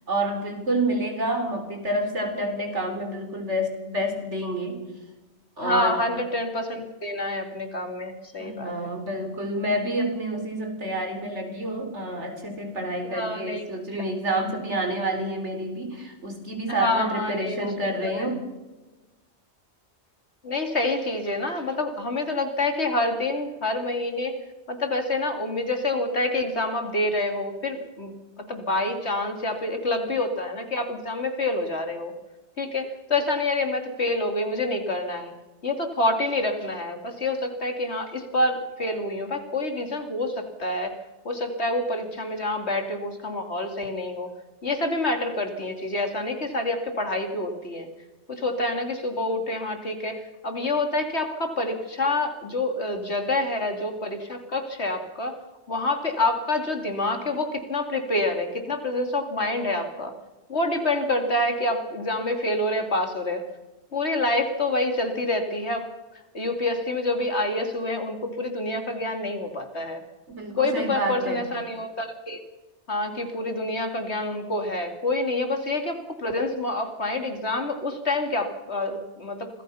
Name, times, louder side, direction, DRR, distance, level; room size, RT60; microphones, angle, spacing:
voice 1, 0.1-4.8 5.6-6.0 8.4-18.5 70.3-71.4, right 1 dB, 85° right, 5 dB, 4.4 m, -28 dB
voice 2, 5.6-8.7 13.0-13.6 16.7-18.3 20.4-24.3 24.7-32.1 32.6-35.3 35.6-40.9 41.2-44.3 44.6-47.9 48.3-55.4 55.7-60.1 60.5-63.4 63.9-65.8 66.3-70.0 70.6-72.4 72.9-79.5, left 2 dB, 70° left, 5 dB, 3.2 m, -27 dB
26.0 x 19.0 x 5.8 m, 1.1 s
omnidirectional pair, 1.2 m